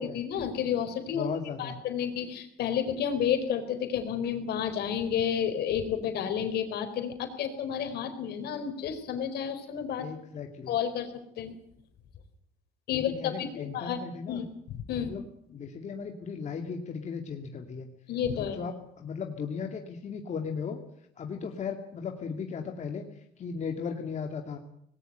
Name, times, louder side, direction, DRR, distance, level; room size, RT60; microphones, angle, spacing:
voice 1, 0.0-1.3 1.6-10.1 10.7-11.1 11.4-11.5 12.9-14.0 14.3-14.5 14.9-15.1 18.1-18.6, left 8 dB, 75° left, 7 dB, 4.3 m, -31 dB
voice 2, 1.1-1.8 10.0-10.7 12.9-14.4 14.9-17.9 18.4-20.8 21.2-23.1 23.4-24.6, left 6 dB, 45° left, 3 dB, 2.4 m, -36 dB
20.0 x 18.0 x 9.0 m, 0.69 s
cardioid pair, 110°, 17 cm